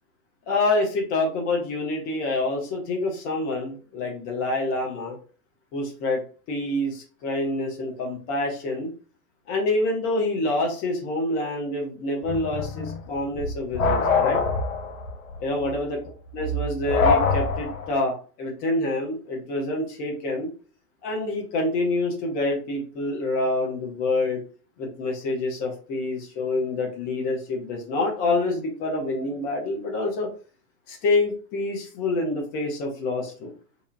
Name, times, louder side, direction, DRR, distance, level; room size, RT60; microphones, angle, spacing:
voice 1, 0.5-5.2 5.7-6.2 6.5-8.9 9.5-14.4 15.4-16.0 16.3-20.5 21.0-24.4 24.8-30.3 30.9-33.5, left 2 dB, 20° left, 0 dB, 0.6 m, -27 dB
sound 1, 12.2-18.0, left 4 dB, 60° left, 0.6 m, -25 dB
2.7 x 2.1 x 2.6 m, 0.40 s
figure-of-eight pair, 105°, 46 cm